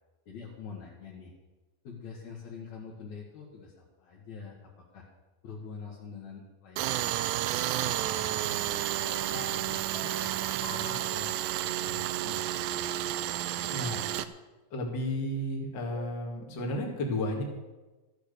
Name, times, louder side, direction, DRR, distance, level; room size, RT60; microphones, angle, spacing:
voice 1, 0.3-1.3 1.8-5.0 5.4-7.3 7.8-10.3 10.6-12.9 13.4-13.7, left 5 dB, 55° left, -4 dB, 2.5 m, -46 dB
Tools, 6.8-14.3, right 13 dB, 90° right, 2.8 m, -31 dB
sound 1, 9.0-11.8 16.0-16.4, left 6 dB, 75° left, 2.5 m, -48 dB
voice 2, 13.7-14.0 14.7-17.4, left 1 dB, 35° left, 0 dB, 1.9 m, -32 dB
13.5 x 8.5 x 6.8 m, 1.2 s
omnidirectional pair, 4.8 m